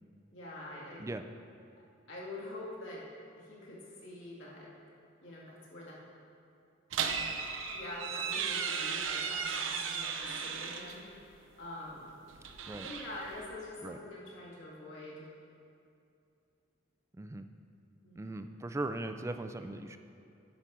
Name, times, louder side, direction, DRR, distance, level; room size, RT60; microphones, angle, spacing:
voice 1, 0.3-1.1 2.1-3.1 3.4-4.7 5.2-6.0 7.2-12.2 12.6-15.3 18.0-18.5, left 1 dB, 70° left, -5 dB, 2.1 m, -46 dB
sound 1, 6.9-11.0 12.3-13.5, right 6 dB, 70° right, 0.7 m, -35 dB
voice 2, 17.1-17.5 18.2-20.0, right 2 dB, 15° right, 9 dB, 0.3 m, -39 dB
10.0 x 5.2 x 6.1 m, 2.6 s
head